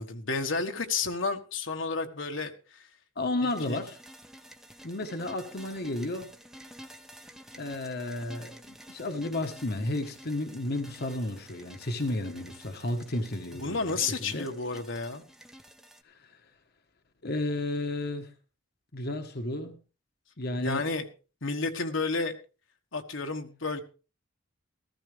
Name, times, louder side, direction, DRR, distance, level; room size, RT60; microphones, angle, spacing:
voice 1, 0.0-2.9 3.4-3.8 13.5-15.2 20.6-21.0 21.4-22.4 22.9-23.8, left 4 dB, 70° left, 1.5 m, -31 dB
voice 2, 3.2-4.0 4.8-6.3 7.6-14.5 16.0-16.4 17.2-18.3 18.9-19.8 20.4-20.9, left 2 dB, 55° left, 1.3 m, -33 dB
sound 1, 3.5-16.0, equal, ahead, 0.9 m, -50 dB
14.5 x 14.5 x 3.4 m
head